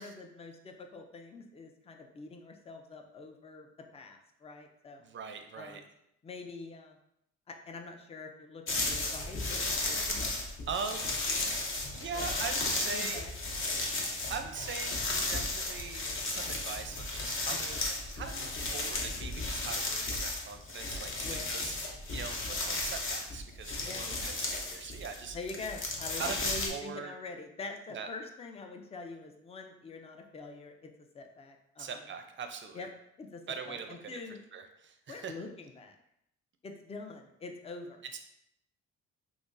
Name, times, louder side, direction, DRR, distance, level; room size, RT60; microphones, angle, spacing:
voice 1, 0.0-3.7 3.9-5.0 5.5-5.8 6.2-7.0 7.5-10.3 11.0-11.2 11.9-12.3 12.9-13.3 17.5-17.6 21.2-21.8 22.6-22.7 23.8-24.1 25.3-30.9 31.1-32.0 32.7-32.9 33.2-34.4 35.1-35.9 36.6-38.0, left 3 dB, 20° left, 4 dB, 0.4 m, -45 dB
voice 2, 5.0-5.8 10.4-11.1 11.9-13.3 13.8-13.9 14.3-14.9 15.3-17.8 18.1-25.4 26.2-27.1 27.9-28.1 31.8-32.9 33.5-34.2 34.5-35.3 38.1-38.2, right 5 dB, 40° right, 6 dB, 0.5 m, -41 dB
sound 1, 8.7-26.7, left 2 dB, 45° left, 0.8 m, -34 dB
5.9 x 2.0 x 2.5 m, 0.77 s
cardioid pair, 90°, 30 cm